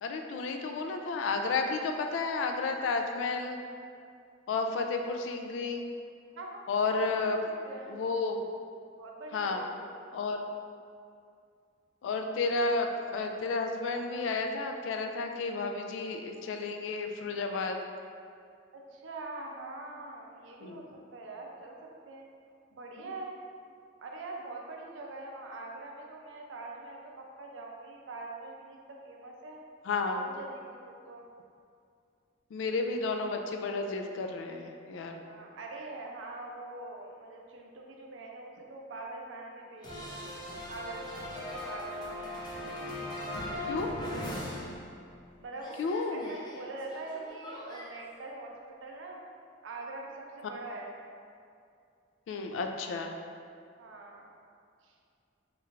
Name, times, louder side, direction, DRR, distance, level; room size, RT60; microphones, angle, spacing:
voice 1, 0.0-3.6 4.5-5.8 6.7-7.4 7.9-8.4 9.3-9.6 10.1-10.4 12.0-17.8 20.6-20.9 29.9-30.2 32.5-35.2 43.7-44.0 45.8-46.3 52.3-53.1, left 3 dB, 85° left, 4 dB, 0.3 m, -32 dB
voice 2, 6.3-6.6 6.9-7.3 7.7-8.0 9.0-9.9 18.7-20.8 21.1-22.3 22.7-23.4 24.0-29.6 30.1-30.8 31.1-31.2 35.2-40.2 40.7-42.4 43.6-44.4 45.4-45.8 46.1-49.2 49.6-51.0 53.8-54.3 54.8-54.9, right 2 dB, 90° right, 0 dB, 0.5 m, -43 dB
sound 1, 39.8-45.3 45.6-47.9, left 1 dB, 25° left, 0.5 m, -39 dB
3.3 x 3.1 x 2.4 m, 2.4 s
head